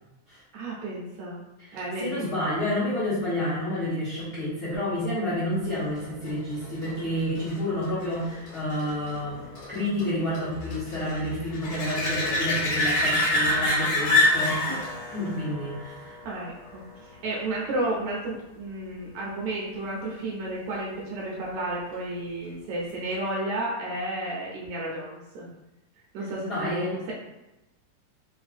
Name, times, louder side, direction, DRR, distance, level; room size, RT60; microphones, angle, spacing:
voice 1, 0.5-1.4 1.7-2.3 16.2-16.7 17.0-25.5 26.1-27.1, right 1 dB, 75° right, -4 dB, 1.8 m, -32 dB
voice 2, 1.6-14.8 15.1-16.2 26.5-27.0, left 1 dB, 50° left, -10 dB, 1.2 m, -29 dB
sound 1, 6.0-17.3 22.9-23.0, left 1 dB, 90° left, 2.6 m, -28 dB
5.3 x 2.4 x 2.5 m, 0.99 s
omnidirectional pair, 3.6 m